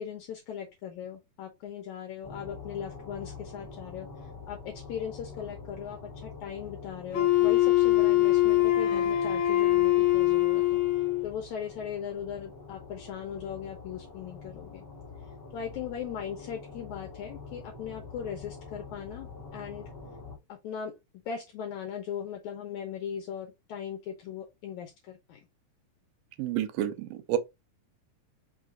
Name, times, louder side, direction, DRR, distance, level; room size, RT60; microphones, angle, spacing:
voice 1, 0.0-10.8 11.2-14.9 15.5-19.9 20.5-25.5, left 8 dB, 75° left, 2.0 m, -39 dB
sound 1, 2.2-20.4, left 4 dB, 40° left, 1.5 m, -46 dB
Wind instrument woodwind instrument, 7.1-11.3, left 15 dB, 55° left, 2.0 m, -23 dB
voice 2, 26.4-27.4, right 12 dB, 90° right, 2.4 m, -29 dB
5.5 x 2.5 x 3.7 m
omnidirectional pair, 3.8 m